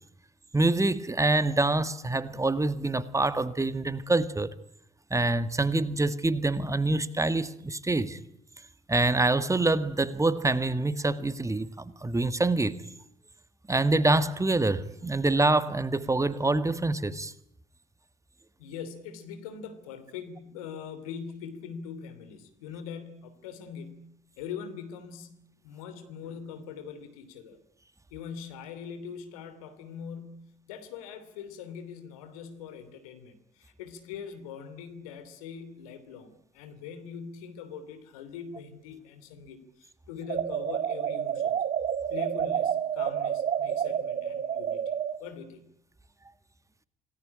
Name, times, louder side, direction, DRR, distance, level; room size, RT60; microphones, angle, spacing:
voice 1, 0.5-4.5 5.1-8.2 8.9-12.8 13.7-17.3, right 2 dB, 15° right, 1.7 m, -26 dB
voice 2, 18.6-27.6 28.1-41.6 42.1-45.7, left 7 dB, 75° left, 2.9 m, -42 dB
sound 1, 40.3-45.2, right 9 dB, 45° right, 1.6 m, -29 dB
27.5 x 19.0 x 9.8 m
figure-of-eight pair, 45°, 18 cm